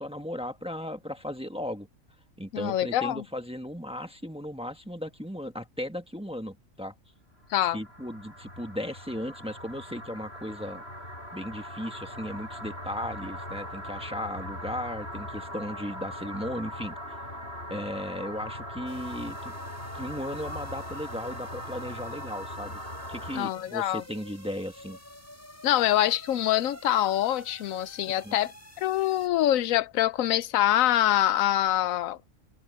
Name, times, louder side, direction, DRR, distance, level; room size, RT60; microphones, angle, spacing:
voice 1, 0.0-1.9 2.4-6.9 7.7-10.8 11.3-17.0 17.7-19.5 19.9-22.8 23.1-25.0 28.2-28.4, equal, 5° right, 1.3 m, -36 dB
voice 2, 2.5-3.2 7.5-7.8 23.3-24.0 25.6-28.5 28.8-32.2, left 12 dB, 90° left, 1.0 m, -25 dB
sound 1, 7.4-23.4, equal, 50° left, 7.9 m, -40 dB
sound 2, 18.9-29.3, equal, 10° left, 5.9 m, -49 dB
omnidirectional pair, 1.4 m